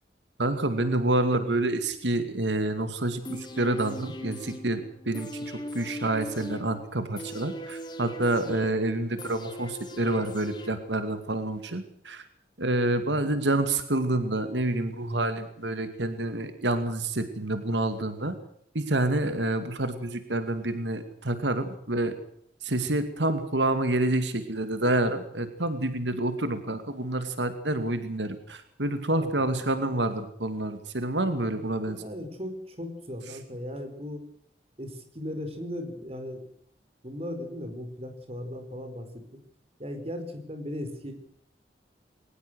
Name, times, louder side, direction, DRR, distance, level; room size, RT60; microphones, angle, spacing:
voice 1, 0.4-12.2 12.6-18.4 18.7-22.1 22.6-32.0, right 2 dB, 90° right, 9 dB, 2.4 m, -28 dB
sound 1, 3.2-11.2 11.6-11.7, equal, 25° left, 2.9 m, -40 dB
voice 2, 29.1-29.5 31.8-34.2 34.8-36.4 37.0-39.4 39.8-41.1, left 1 dB, 35° right, 7 dB, 4.9 m, -37 dB
22.5 x 19.5 x 6.4 m, 0.66 s
head